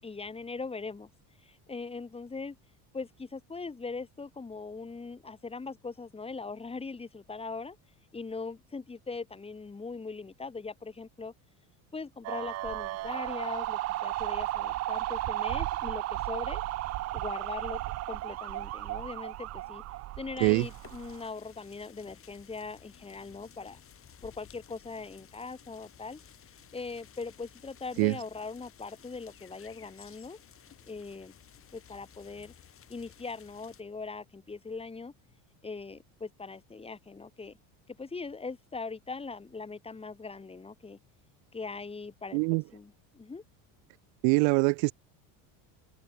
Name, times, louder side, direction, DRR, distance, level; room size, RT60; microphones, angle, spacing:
voice 1, 0.0-1.1 1.4-2.6 2.9-7.8 8.1-11.3 11.9-16.6 17.1-17.8 18.1-19.8 20.2-23.8 24.2-26.2 26.7-30.4 30.9-31.3 31.7-32.5 32.9-35.1 35.6-37.6 37.9-41.0 41.5-42.4 42.7-43.4, left 4 dB, 15° left, 6.6 m, -40 dB
sound 1, 12.2-21.3, right 16 dB, 40° right, 0.6 m, -34 dB
sound 2, 20.5-33.8, left 9 dB, 35° left, 7.5 m, -56 dB
voice 2, 44.2-44.9, right 40 dB or more, 75° right, 2.0 m, -23 dB
cardioid pair, 140°, 40 cm